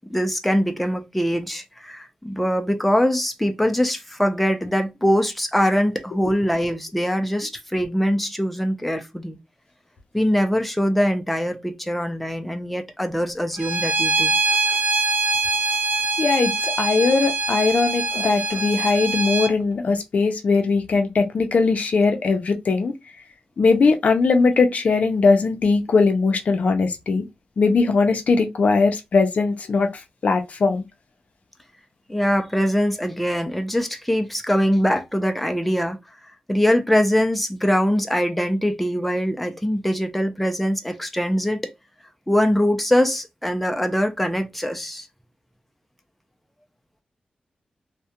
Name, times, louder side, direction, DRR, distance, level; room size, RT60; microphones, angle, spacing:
voice 1, 0.1-9.4 10.1-14.3 32.1-36.0 36.5-41.7 42.3-45.1, equal, 5° left, 0.4 m, -22 dB
Bowed string instrument, 13.6-19.5, right 3 dB, 75° right, 0.4 m, -23 dB
voice 2, 16.2-22.9 23.6-27.2 27.6-29.9 30.2-30.8, left 4 dB, 60° left, 0.5 m, -20 dB
2.3 x 2.1 x 2.7 m
wide cardioid pair, 105°, 3 cm